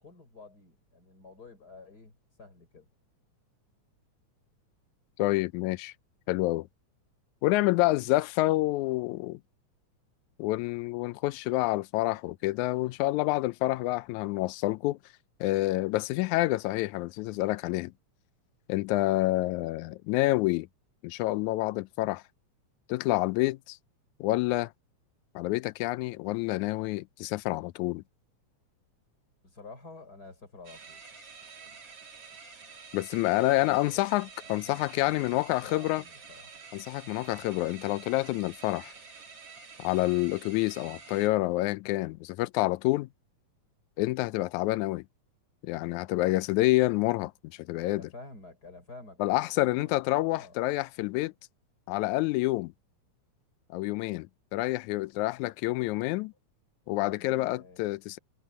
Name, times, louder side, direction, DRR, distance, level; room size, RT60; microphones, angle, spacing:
voice 1, 0.0-2.9 29.4-31.0 34.4-36.6 47.8-50.0 50.2-50.6 56.9-57.9, left 3 dB, 30° left, 5.2 m, -50 dB
voice 2, 5.2-5.9 6.3-6.7 7.4-9.4 10.4-15.0 15.4-17.9 18.7-20.7 21.0-22.2 22.9-23.8 24.2-24.7 25.4-28.0 32.9-36.0 36.7-38.9 39.8-43.1 44.0-45.0 45.6-47.3 47.7-48.1 49.2-51.3 51.9-52.7 53.7-54.3 54.5-56.3 56.9-58.2, left 19 dB, 90° left, 2.0 m, -28 dB
sound 1, 30.6-41.3, right 5 dB, 50° right, 3.9 m, -49 dB
omnidirectional pair, 3.3 m